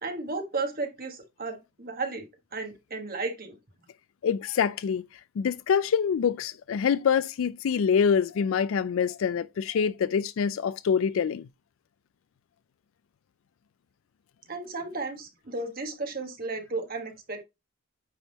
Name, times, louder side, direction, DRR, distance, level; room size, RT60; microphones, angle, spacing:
voice 1, 0.0-2.3 2.5-3.6 14.5-17.4, right 3 dB, 45° right, 1.5 m, -34 dB
voice 2, 4.2-5.0 5.4-11.5, left 7 dB, 65° left, 0.3 m, -25 dB
9.1 x 3.6 x 4.0 m
head